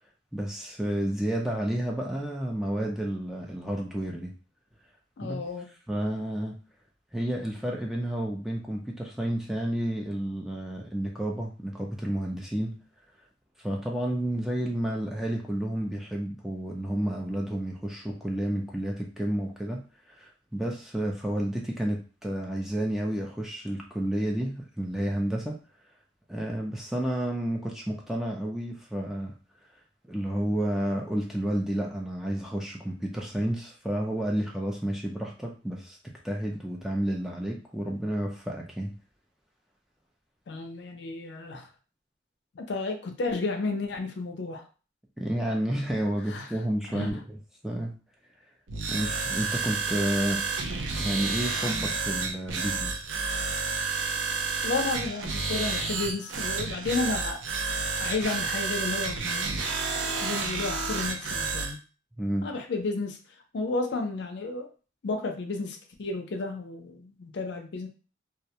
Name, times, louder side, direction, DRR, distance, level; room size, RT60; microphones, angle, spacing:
voice 1, 0.3-4.3 5.2-5.4 5.9-6.6 7.1-12.8 13.6-25.6 26.3-29.3 30.1-38.9 45.2-47.4 47.6-47.9 48.9-50.5 51.0-53.0 62.2-62.5, right 1 dB, ahead, -1 dB, 0.3 m, -31 dB
voice 2, 5.2-5.7 40.5-41.7 42.6-44.6 46.3-46.5 46.9-47.1 54.6-57.4 58.0-59.4 60.2-61.8 62.4-63.2 63.5-64.7 65.0-67.9, left 3 dB, 65° left, 4 dB, 0.4 m, -32 dB
sound 1, 48.7-61.7, right 4 dB, 85° right, 0.5 m, -30 dB
2.3 x 2.1 x 2.7 m, 0.35 s
head